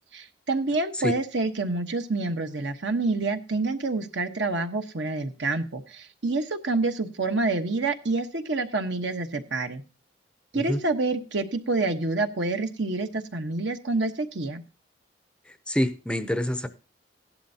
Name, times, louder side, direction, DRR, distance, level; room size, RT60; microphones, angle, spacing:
voice 1, 0.1-9.8 10.5-14.6, right 3 dB, 70° right, 1.2 m, -27 dB
voice 2, 15.5-16.7, equal, 5° left, 0.6 m, -27 dB
16.0 x 11.5 x 2.8 m
head